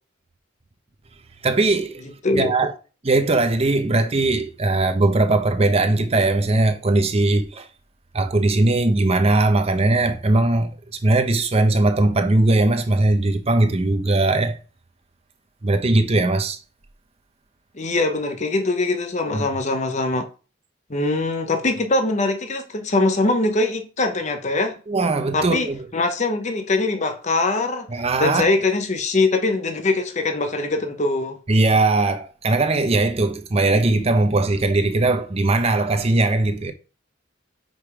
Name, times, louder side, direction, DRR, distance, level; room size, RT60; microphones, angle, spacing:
voice 1, 1.4-2.0 2.3-2.7 3.0-7.7 8.1-14.6 15.6-16.6 19.3-19.4 24.9-25.8 27.9-28.5 31.5-36.7, right 2 dB, 30° right, 0.6 m, -19 dB
voice 2, 17.7-20.3 20.9-24.7 25.3-27.9 28.2-31.4, left 2 dB, 35° left, 0.8 m, -22 dB
5.2 x 5.0 x 4.9 m
head